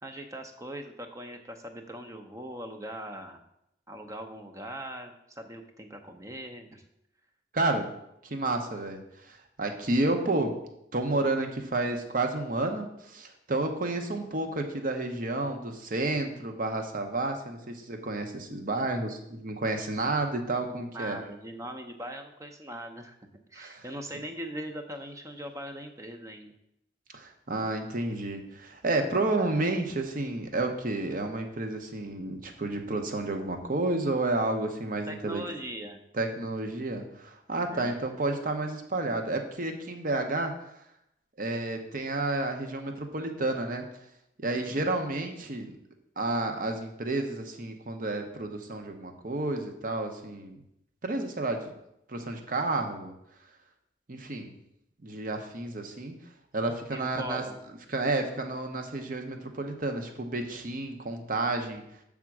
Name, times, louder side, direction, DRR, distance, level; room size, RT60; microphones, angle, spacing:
voice 1, 0.0-3.4 3.9-6.8 20.7-23.2 23.5-26.5 35.1-36.0 37.7-38.0 44.6-44.9 56.9-57.6, right 1 dB, 15° right, 5 dB, 0.6 m, -40 dB
voice 2, 7.5-7.9 8.2-10.6 10.9-21.2 23.6-23.8 27.1-35.4 36.1-40.5 41.4-43.8 44.4-45.7 46.2-50.6 51.0-51.7 52.1-53.1 54.1-54.5 55.0-56.2 56.5-57.5 57.9-61.8, right 2 dB, 45° right, 5 dB, 0.8 m, -31 dB
7.2 x 3.7 x 5.9 m, 0.79 s
head